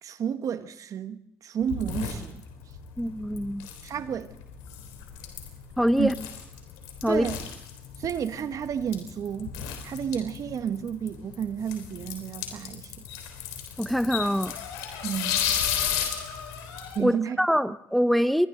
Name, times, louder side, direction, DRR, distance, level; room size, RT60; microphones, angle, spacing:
voice 1, 0.0-2.4 3.8-4.3 6.0-6.1 7.1-7.4 8.0-9.5 9.8-13.1 15.0-15.4 16.9-17.4, right 8 dB, 55° right, 1.3 m, -31 dB
sound 1, 1.6-17.0, left 8 dB, 80° left, 3.7 m, -34 dB
voice 2, 3.0-3.7 5.8-6.1 7.0-7.2 13.8-14.6 17.0-18.5, equal, ahead, 0.9 m, -24 dB
29.0 x 22.5 x 3.9 m
hypercardioid pair, 65°, 7 cm